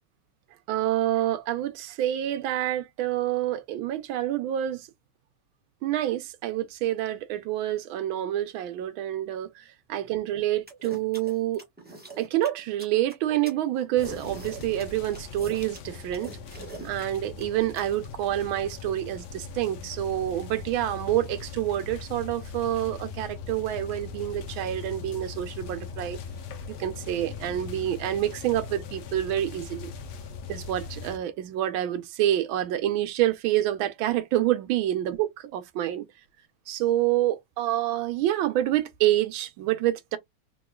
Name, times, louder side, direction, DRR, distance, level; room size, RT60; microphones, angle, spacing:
voice 1, 0.7-4.9 5.8-11.6 12.2-16.3 16.8-26.2 26.8-29.9 30.5-36.0 36.7-40.2, right 13 dB, 75° right, 1.3 m, -27 dB
sound 1, 10.7-17.8, right 2 dB, 10° right, 0.4 m, -42 dB
sound 2, 14.0-31.2, left 5 dB, 70° left, 1.1 m, -40 dB
3.6 x 3.0 x 2.3 m
omnidirectional pair, 2.4 m